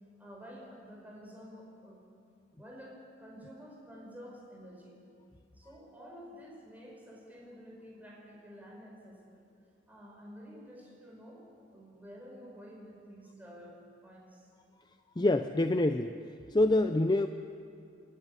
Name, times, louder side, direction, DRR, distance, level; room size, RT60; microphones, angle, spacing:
voice 1, 0.2-2.0 2.6-5.0 5.5-9.4 9.9-11.4 11.7-13.8 14.0-14.5, equal, 10° right, -2 dB, 5.2 m, -50 dB
voice 2, 15.2-16.1 16.5-17.3, left 2 dB, 20° left, 8 dB, 0.5 m, -26 dB
29.5 x 11.0 x 9.9 m, 2.4 s
head